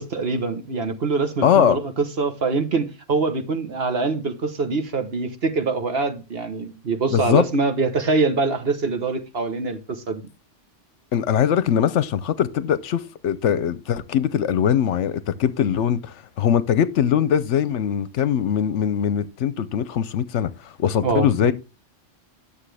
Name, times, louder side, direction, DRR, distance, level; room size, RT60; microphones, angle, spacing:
voice 1, 0.0-10.2 21.0-21.5, right 4 dB, 55° right, 1.3 m, -24 dB
voice 2, 1.4-1.8 7.1-7.4 11.1-21.5, left 9 dB, 70° left, 0.9 m, -21 dB
9.8 x 7.2 x 3.3 m
omnidirectional pair, 1.3 m